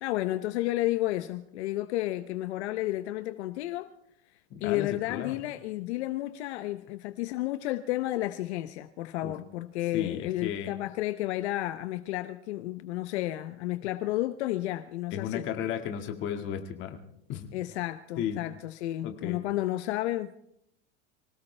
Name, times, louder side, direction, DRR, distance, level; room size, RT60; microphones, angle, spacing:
voice 1, 0.0-3.9 4.6-15.5 17.5-20.4, left 16 dB, 70° left, 0.9 m, -32 dB
voice 2, 4.5-5.4 9.2-9.3 9.9-10.7 15.1-17.0 17.3-17.5 18.2-18.4 19.0-19.4, left 9 dB, 35° left, 1.9 m, -34 dB
25.0 x 17.5 x 3.3 m
supercardioid pair, 155°, 35 cm